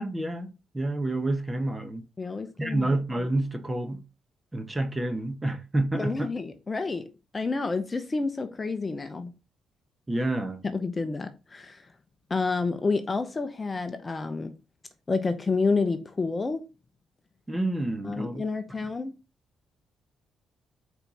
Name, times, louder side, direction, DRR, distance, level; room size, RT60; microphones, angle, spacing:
voice 1, 0.0-2.0 2.6-4.0 4.5-6.3 10.1-10.6 17.5-18.4, right 2 dB, 15° right, 1.2 m, -29 dB
voice 2, 2.2-3.0 5.9-9.3 10.6-11.8 12.3-14.5 15.1-16.7 18.0-19.1, left 4 dB, 25° left, 0.8 m, -29 dB
4.6 x 4.4 x 5.5 m
cardioid pair, 90°, 0 cm